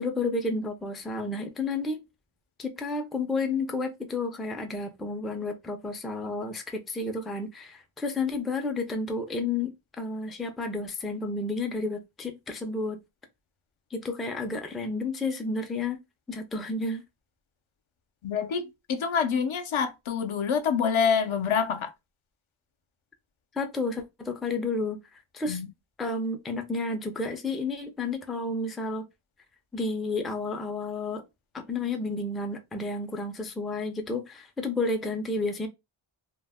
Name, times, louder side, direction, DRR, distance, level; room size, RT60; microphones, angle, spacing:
voice 1, 0.0-2.0 2.6-13.0 13.9-16.0 16.3-17.0 23.5-25.6 26.0-29.0 29.7-31.2 31.5-35.7, left 3 dB, ahead, 0.3 m, -31 dB
voice 2, 18.2-21.9 25.5-25.7, left 6 dB, 70° left, 0.6 m, -26 dB
2.2 x 2.0 x 3.4 m
wide cardioid pair, 70°, 50 cm